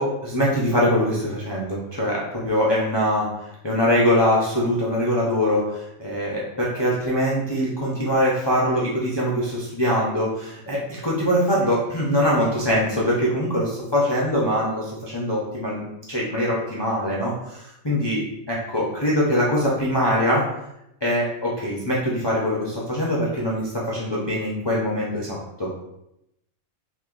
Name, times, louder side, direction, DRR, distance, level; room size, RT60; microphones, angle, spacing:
voice 1, 0.0-20.5 21.0-25.7, equal, 35° left, -6 dB, 0.4 m, -23 dB
3.0 x 2.9 x 3.8 m, 0.85 s
omnidirectional pair, 1.5 m